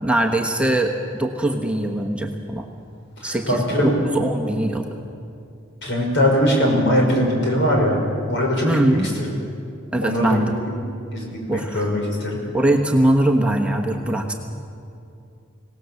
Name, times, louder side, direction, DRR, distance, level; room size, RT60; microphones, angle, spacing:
voice 1, 0.0-2.7 3.2-4.9 8.6-9.1 9.9-10.6 11.5-11.8 12.5-14.3, right 1 dB, 5° right, 1 dB, 1.1 m, -21 dB
voice 2, 3.2-3.9 5.8-8.0 8.3-9.0 9.2-9.3 10.0-10.7 11.1-12.4, equal, 60° left, 0 dB, 5.7 m, -21 dB
25.5 x 18.0 x 7.1 m, 2.5 s
head